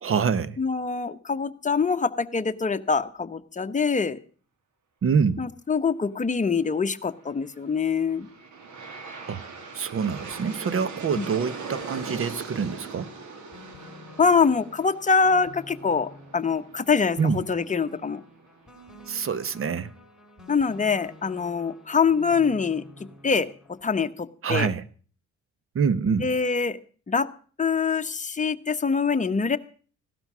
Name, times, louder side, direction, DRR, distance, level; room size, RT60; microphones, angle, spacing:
voice 1, 0.0-0.6 5.0-5.5 9.3-9.4 9.7-13.1 17.2-17.4 19.1-19.9 24.4-24.8 25.7-26.3, right 6 dB, 45° right, 1.1 m, -25 dB
voice 2, 0.6-4.2 5.4-8.3 11.2-11.3 14.2-18.2 20.5-22.8 23.2-23.5 23.8-24.7 26.2-26.8 27.1-27.3 27.6-29.6, left 5 dB, 25° left, 1.1 m, -24 dB
Aircraft, 7.7-18.7, right 4 dB, 70° right, 2.9 m, -41 dB
sound 1, 10.3-23.8, equal, ahead, 6.2 m, -49 dB
16.5 x 12.5 x 6.2 m
cardioid pair, 90°, 30 cm